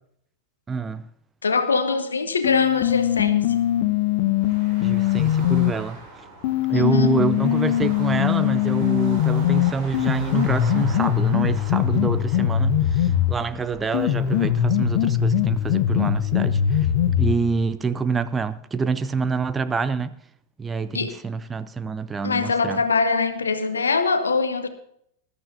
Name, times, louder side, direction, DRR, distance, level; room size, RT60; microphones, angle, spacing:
voice 1, 0.7-1.0 4.8-6.0 6.7-16.9 17.2-20.1 20.6-22.8, right 4 dB, 15° right, 0.5 m, -26 dB
voice 2, 1.4-3.4 6.7-7.1 20.9-21.2 22.2-24.7, left 4 dB, 75° left, 1.2 m, -23 dB
sound 1, 2.4-5.7 6.4-13.4 13.9-17.4, left 10 dB, 50° left, 1.0 m, -21 dB
sound 2, 4.4-14.7, right 3 dB, 35° right, 4.7 m, -42 dB
20.5 x 12.5 x 2.7 m
figure-of-eight pair, 90°, 0 cm